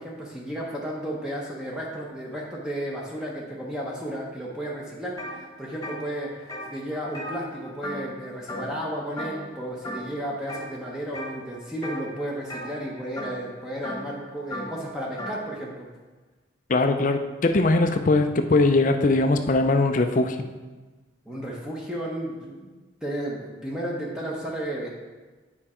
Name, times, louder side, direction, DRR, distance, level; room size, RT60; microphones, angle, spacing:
voice 1, 0.0-15.9 21.3-22.7 23.0-24.9, right 1 dB, 5° right, -4 dB, 0.9 m, -33 dB
sound 1, 5.2-5.4 5.7-8.2 8.5-8.9 9.2-9.5 9.8-10.7 11.1-11.4 11.8-15.4, equal, 15° left, 1.3 m, -36 dB
voice 2, 16.7-20.4, left 2 dB, 40° left, 7 dB, 0.5 m, -21 dB
9.0 x 4.8 x 4.3 m, 1.3 s
head